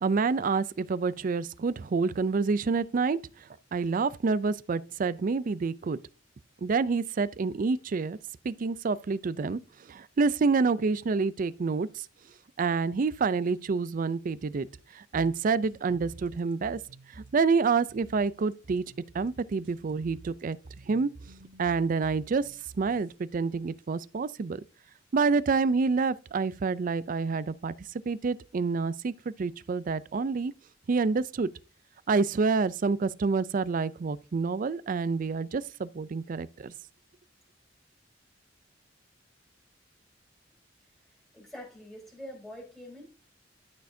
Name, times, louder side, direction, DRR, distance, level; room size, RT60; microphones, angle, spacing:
voice 1, 0.0-3.2 3.7-6.0 6.6-8.2 8.4-9.6 9.9-12.1 12.6-14.7 14.9-16.8 17.1-18.8 19.1-20.6 20.9-21.1 21.6-22.5 22.8-24.6 25.1-27.7 28.1-29.1 29.4-30.5 30.9-31.5 32.1-36.7, right 4 dB, 45° right, 0.4 m, -27 dB
sound 1, 15.1-23.1, right 3 dB, 75° right, 1.0 m, -50 dB
voice 2, 41.1-43.0, equal, ahead, 3.6 m, -45 dB
12.0 x 6.3 x 2.7 m
head